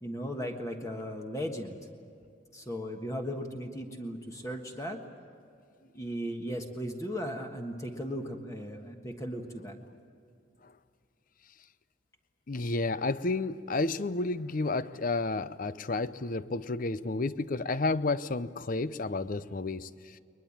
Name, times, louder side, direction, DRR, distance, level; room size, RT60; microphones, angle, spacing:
voice 1, 0.0-1.8 2.5-5.0 5.8-9.8, equal, 15° left, 3 dB, 1.4 m, -37 dB
voice 2, 12.5-19.9, left 3 dB, 45° left, 15 dB, 0.6 m, -31 dB
22.0 x 21.0 x 8.7 m, 2.4 s
head